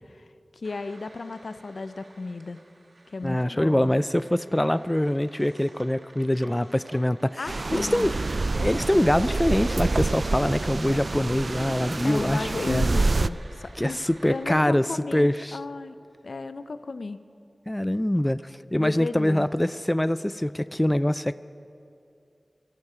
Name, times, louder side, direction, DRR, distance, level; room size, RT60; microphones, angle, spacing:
voice 1, 0.5-2.6 3.1-4.0 7.4-8.1 12.0-14.0 14.3-16.0 16.2-17.2 18.8-19.5, left 3 dB, 85° left, 12 dB, 0.6 m, -34 dB
sound 1, 0.6-14.4, right 2 dB, 85° right, 1.7 m, -52 dB
voice 2, 3.2-8.1 8.5-12.9 13.8-14.9 15.1-15.6 17.7-18.4 18.7-21.4, left 1 dB, 15° left, 16 dB, 0.4 m, -24 dB
sound 2, 7.5-13.3, right 3 dB, 65° right, 0.3 m, -27 dB
24.5 x 12.0 x 4.9 m, 2.6 s
wide cardioid pair, 45°, 0 cm